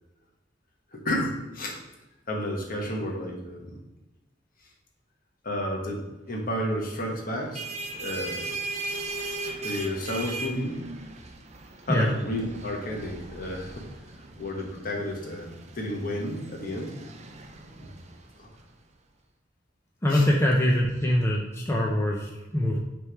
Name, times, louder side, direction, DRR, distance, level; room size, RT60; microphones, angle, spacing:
voice 1, 0.9-1.8 2.3-3.8 5.4-7.6 7.9-8.5 9.6-10.8 11.9-13.9 14.1-16.9 17.8-17.9 18.4-18.5 20.1-20.3 20.6-20.8, left 1 dB, 50° left, -1 dB, 1.3 m, -32 dB
sound 1, 7.3-18.6, right 2 dB, 40° right, 0.6 m, -38 dB
voice 2, 20.0-22.8, left 1 dB, 15° left, -2 dB, 0.6 m, -23 dB
6.5 x 3.5 x 4.5 m, 1.1 s
head